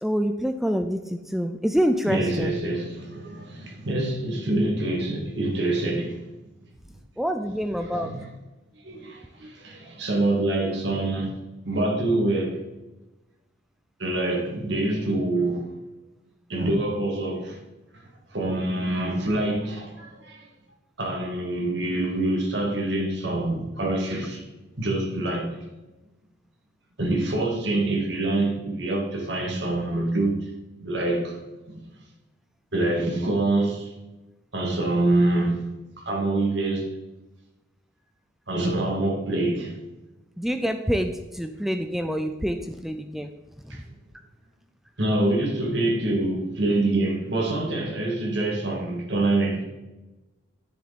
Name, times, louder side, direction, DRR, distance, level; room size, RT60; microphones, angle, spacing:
voice 1, 0.0-2.5 7.2-8.1 40.4-43.3, equal, ahead, 0.4 m, -26 dB
voice 2, 2.1-6.3 7.8-8.3 8.8-11.3 11.7-12.6 14.0-15.7 16.5-17.6 18.3-20.4 21.0-24.4 24.8-25.6 27.0-30.5 30.8-31.4 31.7-31.8 32.7-33.9 34.5-35.7 36.1-36.9 38.5-39.7 43.7-43.8 45.0-49.6, right 2 dB, 70° right, 2.1 m, -25 dB
10.5 x 6.9 x 4.2 m
head